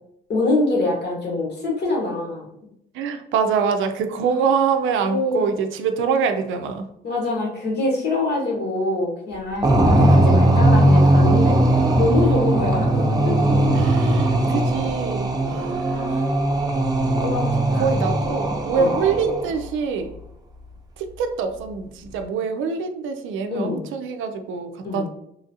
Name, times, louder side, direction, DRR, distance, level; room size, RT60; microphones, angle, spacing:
voice 1, 0.3-2.5 5.0-5.5 7.0-11.6 11.9-13.3 15.9-16.3 17.2-17.8 18.8-18.9 23.5-23.9 24.8-25.1, left 2 dB, 55° left, -1 dB, 1.2 m, -24 dB
voice 2, 2.9-6.9 13.8-16.1 17.8-20.1 21.0-25.1, right 6 dB, 85° right, 6 dB, 0.4 m, -24 dB
sound 1, 9.6-19.5, right 1 dB, 20° right, 0.5 m, -19 dB
3.0 x 2.4 x 2.7 m, 0.78 s
cardioid pair, 90°, 20 cm